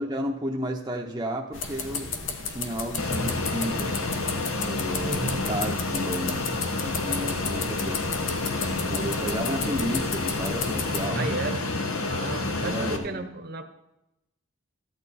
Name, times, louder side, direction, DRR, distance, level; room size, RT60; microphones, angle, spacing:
voice 1, 0.0-2.1 2.5-3.9 4.6-8.0 8.8-11.3 12.6-13.3, equal, 20° right, 0 dB, 0.7 m, -32 dB
sound 1, 1.5-11.1, left 5 dB, 65° left, 1.1 m, -34 dB
Fixed-wing aircraft airplane, 3.0-13.0, left 2 dB, 90° left, 1.2 m, -29 dB
voice 2, 5.0-5.5 11.1-11.6 12.0-13.6, right 3 dB, 45° right, 8 dB, 0.9 m, -33 dB
14.0 x 9.2 x 4.2 m, 0.91 s
head